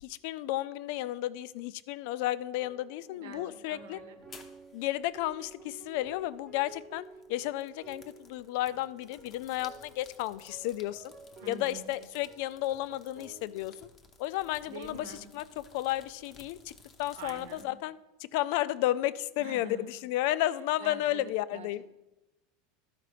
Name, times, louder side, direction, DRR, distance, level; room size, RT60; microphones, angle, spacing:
voice 1, 0.0-4.0 4.7-11.1 11.5-13.9 14.2-16.7 17.0-18.0 18.3-21.8, left 15 dB, 50° left, 16 dB, 0.3 m, -33 dB
sound 1, 2.6-13.8, right 3 dB, 20° right, 0.9 m, -53 dB
voice 2, 3.1-4.2 11.4-11.9 14.7-15.3 17.1-17.8 19.4-19.9 20.8-21.9, right 3 dB, 80° right, 8 dB, 1.1 m, -46 dB
sound 2, 4.2-17.6, left 4 dB, 20° left, 0.7 m, -57 dB
13.0 x 5.0 x 4.9 m, 1.0 s
supercardioid pair, 175°, 0 cm